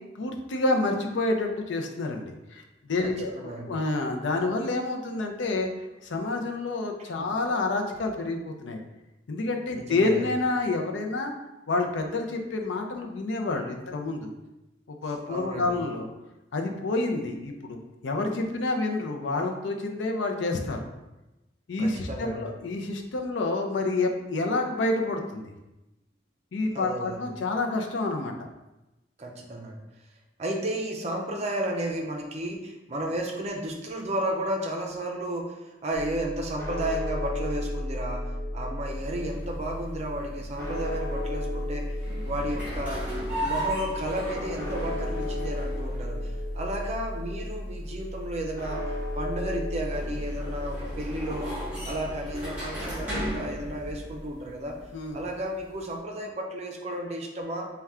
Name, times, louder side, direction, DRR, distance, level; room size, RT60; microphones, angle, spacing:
voice 1, 0.1-5.7 6.0-8.8 9.3-11.3 11.7-14.3 14.9-16.1 16.5-20.9 21.7-25.5 26.5-28.3 54.9-55.2, left 2 dB, 80° left, 3 dB, 0.5 m, -28 dB
voice 2, 3.0-3.7 7.2-7.3 9.7-10.2 15.3-15.7 21.8-22.5 26.7-27.2 29.2-29.8 30.4-35.6 35.8-41.9 42.2-43.0 43.4-48.8 49.2-51.5 51.9-54.8 55.1-57.7, right 1 dB, 35° right, 1 dB, 0.5 m, -33 dB
sound 1, 35.9-54.3, left 1 dB, 15° left, 1.0 m, -34 dB
sound 2, 38.9-55.9, right 1 dB, 10° right, 1.5 m, -37 dB
4.2 x 2.2 x 3.5 m, 1.0 s
head